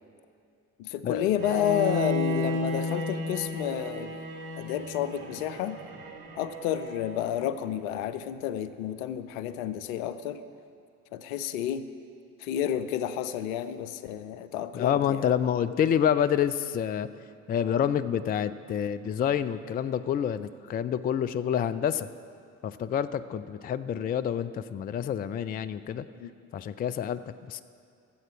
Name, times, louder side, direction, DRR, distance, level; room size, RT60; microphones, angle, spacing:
voice 1, 0.8-4.2 4.6-5.8 6.4-10.4 11.1-11.9 12.4-15.3 26.2-26.3, left 10 dB, 70° left, 13 dB, 0.6 m, -30 dB
Bowed string instrument, 1.4-7.4, left 1 dB, 65° right, 1.6 m, -33 dB
voice 2, 14.7-17.1 17.5-22.1 22.6-26.0 26.5-27.2 27.5-27.6, left 9 dB, 25° left, 14 dB, 0.4 m, -28 dB
15.0 x 7.8 x 6.2 m, 2.4 s
figure-of-eight pair, 45°, 42 cm